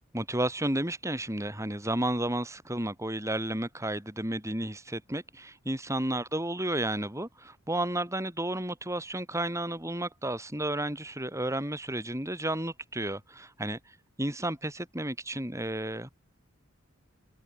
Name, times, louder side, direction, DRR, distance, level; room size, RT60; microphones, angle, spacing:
voice 1, 0.1-13.8 14.2-16.1, right 1 dB, 15° right, 5.7 m, -32 dB
head